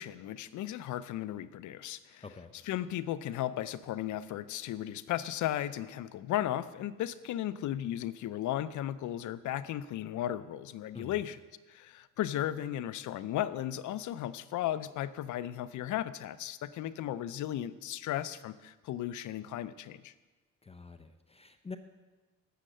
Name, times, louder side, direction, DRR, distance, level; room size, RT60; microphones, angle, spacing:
voice 1, 0.0-2.2 2.6-11.4 11.7-20.1, left 12 dB, 75° left, 16 dB, 0.6 m, -35 dB
voice 2, 2.2-2.5 10.9-11.2 20.6-21.8, left 4 dB, 20° left, 9 dB, 0.6 m, -46 dB
10.0 x 6.5 x 7.8 m, 1.3 s
cardioid pair, 90°, 30 cm